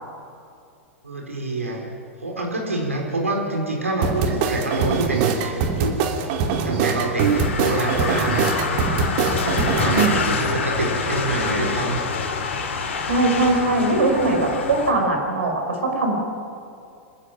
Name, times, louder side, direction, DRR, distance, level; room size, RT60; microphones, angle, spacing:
voice 1, 1.0-1.8 2.2-6.0 6.6-8.4 9.2-12.0, right 2 dB, 80° right, 0 dB, 4.8 m, -26 dB
sound 1, 4.0-10.1, right 6 dB, 45° right, 2.6 m, -23 dB
sound 2, 7.2-14.9, left 5 dB, 60° left, 3.4 m, -26 dB
voice 2, 13.1-16.1, right 2 dB, 65° right, 2 dB, 5.8 m, -21 dB
26.5 x 14.5 x 9.0 m, 2.5 s
figure-of-eight pair, 100°, 7 cm